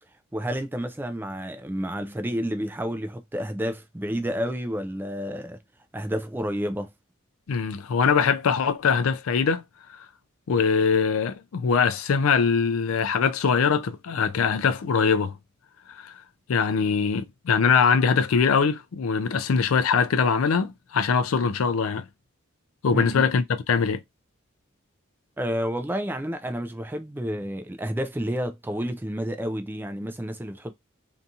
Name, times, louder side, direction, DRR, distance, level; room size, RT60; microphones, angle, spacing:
voice 1, 0.3-5.6 5.9-6.9 22.9-23.2 25.4-30.7, equal, 10° right, 0.3 m, -30 dB
voice 2, 7.5-9.6 10.5-15.3 15.9-16.2 16.5-22.0 22.8-24.0, left 6 dB, 80° left, 0.4 m, -22 dB
2.8 x 2.4 x 2.6 m
head